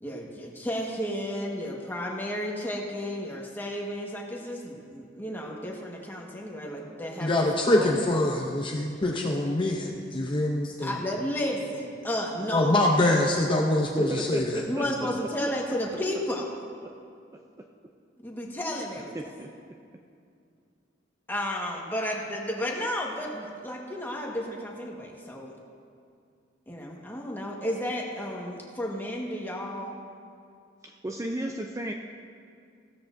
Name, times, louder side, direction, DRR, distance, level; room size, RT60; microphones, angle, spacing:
voice 1, 0.0-8.0 10.8-12.8 14.7-16.5 18.2-19.1 21.3-25.5 26.7-30.0, equal, 10° left, -1 dB, 1.4 m, -32 dB
voice 2, 7.2-10.9 12.5-14.6, left 1 dB, 25° left, 0 dB, 0.6 m, -24 dB
voice 3, 13.9-14.8 16.8-16.9 17.3-17.4 19.1-19.7 30.8-31.9, right 1 dB, 15° right, 2 dB, 0.4 m, -34 dB
16.0 x 13.0 x 2.6 m, 2.3 s
head